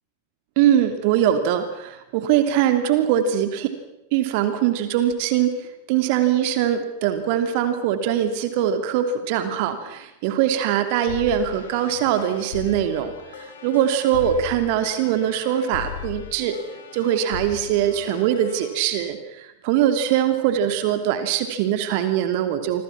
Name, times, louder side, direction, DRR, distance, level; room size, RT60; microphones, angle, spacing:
voice 1, 0.6-3.7 4.1-16.6 16.9-22.8, right 10 dB, 45° right, 9 dB, 2.9 m, -22 dB
sound 1, 11.1-18.7, left 8 dB, 60° left, 4.7 m, -38 dB
28.5 x 25.5 x 6.1 m, 0.85 s
figure-of-eight pair, 90°, 0 cm